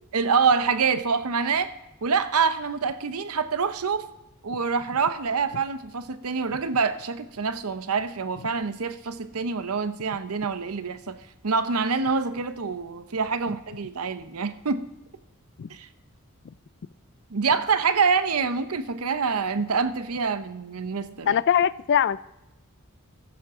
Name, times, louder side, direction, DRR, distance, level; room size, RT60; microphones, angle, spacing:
voice 1, 0.1-1.7 2.0-4.0 4.4-11.2 11.4-14.9 15.7-15.9 17.3-21.4, right 5 dB, 85° right, 12 dB, 0.8 m, -26 dB
voice 2, 21.3-22.2, left 8 dB, 50° left, 19 dB, 0.3 m, -21 dB
15.0 x 12.0 x 3.7 m, 0.94 s
head